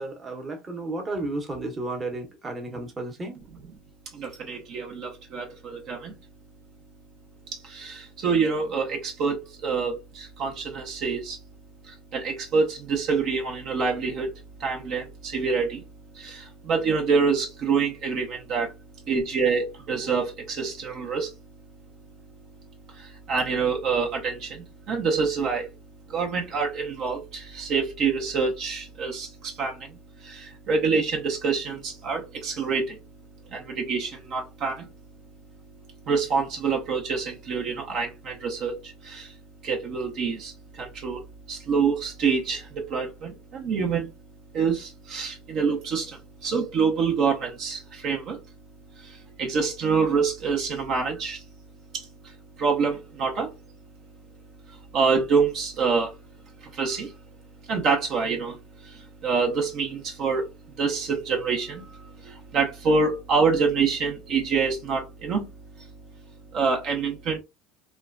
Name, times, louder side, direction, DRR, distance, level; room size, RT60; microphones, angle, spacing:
voice 1, 0.0-3.4, right 2 dB, 25° right, 0.9 m, -33 dB
voice 2, 4.1-6.1 7.5-11.4 11.9-14.3 14.6-15.8 16.1-18.7 19.1-21.3 22.9-25.7 26.1-29.9 30.2-33.0 33.5-34.9 36.1-39.3 39.6-41.2 41.5-44.1 44.5-48.4 49.0-51.4 51.9-52.3 52.6-53.5 54.9-56.2 56.6-57.1 57.7-58.6 58.8-60.5 60.8-65.4 66.5-67.4, right 5 dB, 55° right, 0.6 m, -26 dB
2.9 x 2.2 x 2.4 m
supercardioid pair, 105°, 0 cm